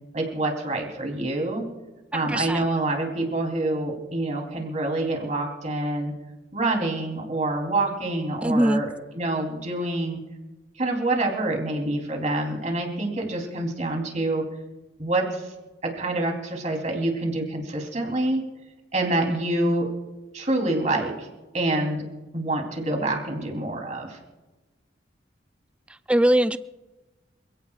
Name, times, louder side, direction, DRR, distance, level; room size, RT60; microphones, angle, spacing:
voice 1, 0.1-1.6 2.1-6.1 6.5-8.9 9.1-10.2 10.8-14.4 15.0-15.5 15.8-18.4 18.9-19.9 20.3-21.3 21.5-22.0 22.3-24.2, right 2 dB, 40° right, 3.6 m, -26 dB
voice 2, 2.1-2.6 8.4-8.8 26.1-26.6, right 1 dB, 5° right, 0.4 m, -21 dB
28.0 x 17.0 x 2.5 m
head